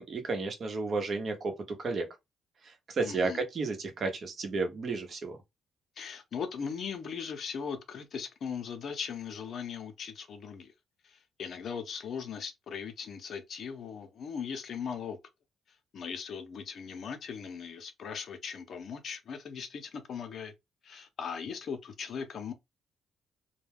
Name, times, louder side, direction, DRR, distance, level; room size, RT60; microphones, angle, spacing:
voice 1, 0.0-2.1 2.6-5.4, right 3 dB, 50° right, 0.8 m, -32 dB
voice 2, 3.0-3.4 6.0-10.7 11.0-15.2 15.9-20.5 20.8-22.5, left 6 dB, 60° left, 0.6 m, -39 dB
2.2 x 2.2 x 3.3 m
cardioid pair, 90°, 0 cm